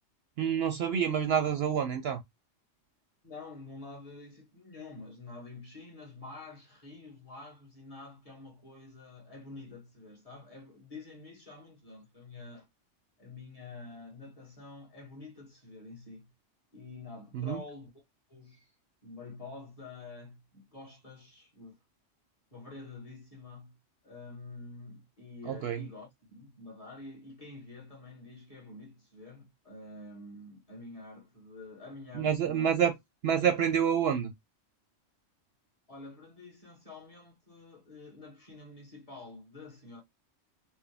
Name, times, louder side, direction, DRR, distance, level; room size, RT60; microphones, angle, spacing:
voice 1, 0.4-2.2 17.3-17.6 25.4-25.8 32.1-32.9 33.2-34.3, right 8 dB, 65° right, 0.7 m, -28 dB
voice 2, 3.2-12.7 13.2-16.3 16.7-17.9 18.3-18.7 19.0-21.8 22.5-23.8 24.0-32.8 35.9-40.0, left 3 dB, 30° left, 1.5 m, -48 dB
4.4 x 2.1 x 3.3 m
omnidirectional pair, 1.3 m